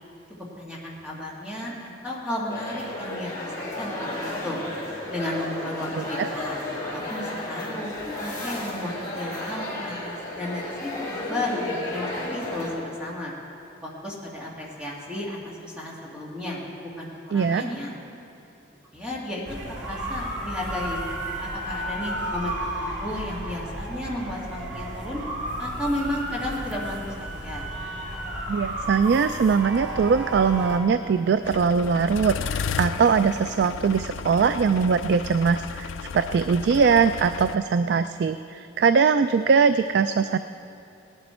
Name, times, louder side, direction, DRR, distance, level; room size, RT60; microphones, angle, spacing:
voice 1, 0.6-4.6 5.1-6.6 6.9-7.9 8.2-13.3 13.8-17.9 18.9-21.0 21.4-25.2 25.6-27.7, left 1 dB, 5° right, -5 dB, 1.9 m, -33 dB
sound 1, 2.5-12.7, left 1 dB, 15° left, 3.5 m, -33 dB
voice 2, 5.9-6.3 17.3-17.6 28.5-40.4, right 5 dB, 60° right, 11 dB, 0.3 m, -21 dB
sound 2, 19.5-30.8, right 1 dB, 80° right, 2.3 m, -32 dB
sound 3, 31.4-37.6, left 6 dB, 90° left, 0.4 m, -34 dB
18.0 x 11.5 x 4.4 m, 2.7 s
head